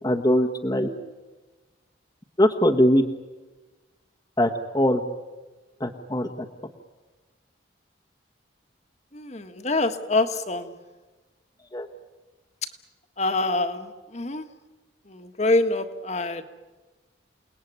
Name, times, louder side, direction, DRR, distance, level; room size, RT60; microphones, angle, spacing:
voice 1, 0.0-0.9 2.4-3.0 4.4-5.0 5.8-6.3 11.7-11.9, equal, 20° left, 2 dB, 1.3 m, -21 dB
voice 2, 9.1-10.7 13.2-13.9 14.1-14.4 15.1-16.4, left 2 dB, 35° left, 7 dB, 1.6 m, -25 dB
29.0 x 19.5 x 9.5 m, 1.2 s
head